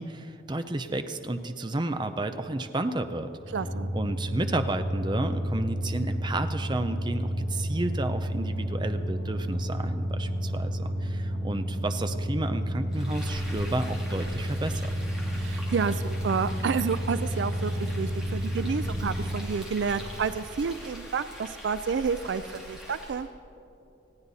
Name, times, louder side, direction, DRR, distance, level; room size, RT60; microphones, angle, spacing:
voice 1, 0.0-3.3 3.9-14.9, right 2 dB, 25° right, 9 dB, 0.6 m, -31 dB
sound 1, 3.4-19.5, equal, 40° left, 1.6 m, -31 dB
voice 2, 3.5-3.9 15.4-23.3, right 5 dB, 70° right, 14 dB, 0.4 m, -30 dB
Frying (food), 12.9-23.3, equal, 5° right, 2.5 m, -43 dB
19.5 x 15.5 x 4.1 m, 2.9 s
head